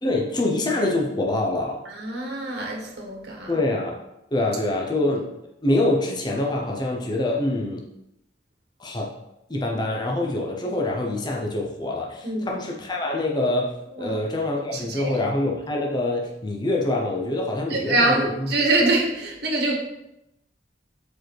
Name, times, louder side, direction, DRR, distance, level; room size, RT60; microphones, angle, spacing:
voice 1, 0.0-1.8 3.5-4.0 4.3-5.3 5.6-7.8 8.8-9.1 9.5-18.6, left 2 dB, 25° left, -1 dB, 0.8 m, -25 dB
voice 2, 1.9-3.5 12.2-12.5 14.0-14.2 14.7-15.1 17.7-19.8, right 2 dB, 60° right, 0 dB, 1.4 m, -24 dB
4.8 x 4.6 x 4.5 m, 0.85 s
head